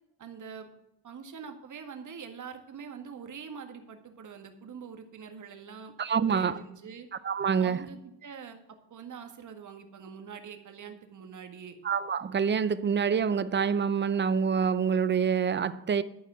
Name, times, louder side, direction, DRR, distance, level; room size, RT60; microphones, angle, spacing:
voice 1, 0.2-0.7 1.0-7.1 7.6-8.6 8.9-11.7, right 6 dB, 50° right, 1.8 m, -44 dB
voice 2, 6.0-6.6 7.2-7.8 11.8-16.0, right 6 dB, 30° right, 0.6 m, -26 dB
12.5 x 4.9 x 7.8 m
cardioid pair, 85°, 40 cm